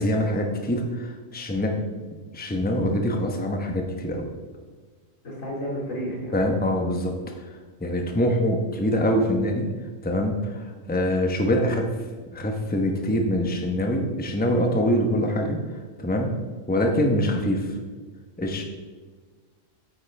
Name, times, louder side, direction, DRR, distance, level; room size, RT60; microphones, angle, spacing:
voice 1, 0.0-1.8 2.3-4.3 6.3-7.1 7.8-9.7 10.0-11.9 12.3-15.6 16.0-16.3 16.7-17.7 18.4-18.6, equal, 10° left, 3 dB, 0.9 m, -24 dB
voice 2, 5.2-6.3 8.7-8.8 16.7-17.0, equal, 85° left, -3 dB, 3.0 m, -32 dB
9.1 x 8.8 x 3.4 m, 1.5 s
omnidirectional pair, 1.3 m